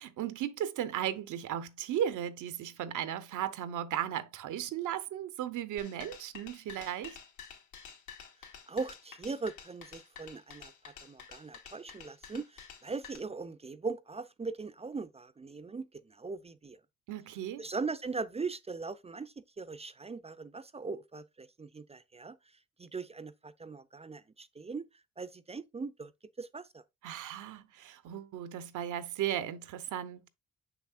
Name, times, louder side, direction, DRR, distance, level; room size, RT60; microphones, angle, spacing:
voice 1, 0.0-7.2 17.1-17.7 27.0-30.3, right 10 dB, 80° right, 0.8 m, -36 dB
sound 1, 5.8-13.2, left 7 dB, 80° left, 2.3 m, -50 dB
voice 2, 8.7-16.8 17.6-22.4 22.8-24.9 25.2-26.1 26.4-26.8, right 4 dB, 20° right, 0.5 m, -40 dB
6.5 x 6.0 x 2.5 m
cardioid pair, 90°, 30 cm